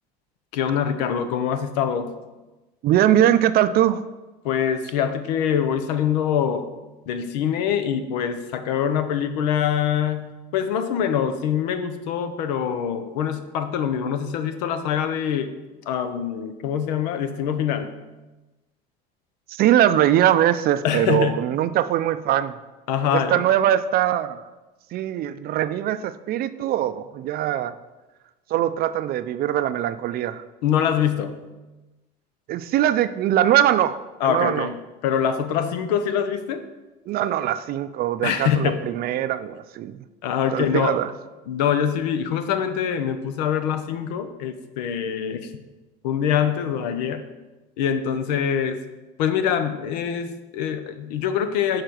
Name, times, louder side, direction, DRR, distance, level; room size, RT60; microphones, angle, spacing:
voice 1, 0.5-2.1 4.4-6.7 7.1-15.5 15.9-17.9 20.8-21.5 22.9-23.4 30.6-31.4 34.2-36.6 38.2-38.9 40.2-41.0 41.5-45.5 46.0-47.3 47.8-48.8 49.2-51.8, left 8 dB, 85° left, 10 dB, 0.7 m, -24 dB
voice 2, 2.8-4.0 19.5-22.6 23.1-24.4 24.9-27.8 28.5-30.4 32.5-34.0 34.2-34.7 37.1-40.0 40.5-41.1, right 11 dB, 50° right, 12 dB, 0.4 m, -21 dB
6.6 x 4.0 x 6.3 m, 1.1 s
supercardioid pair, 105°, 21 cm